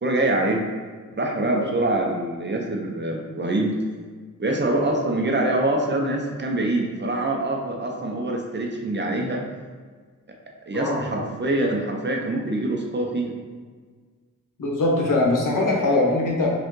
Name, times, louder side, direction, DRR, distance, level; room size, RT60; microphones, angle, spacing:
voice 1, 0.0-0.6 1.2-3.7 4.4-9.4 10.7-13.3, right 2 dB, 35° right, 1 dB, 0.7 m, -24 dB
voice 2, 10.7-11.2 14.6-16.5, left 2 dB, 75° left, -2 dB, 1.0 m, -22 dB
5.2 x 2.5 x 3.8 m, 1.5 s
cardioid pair, 70°, 33 cm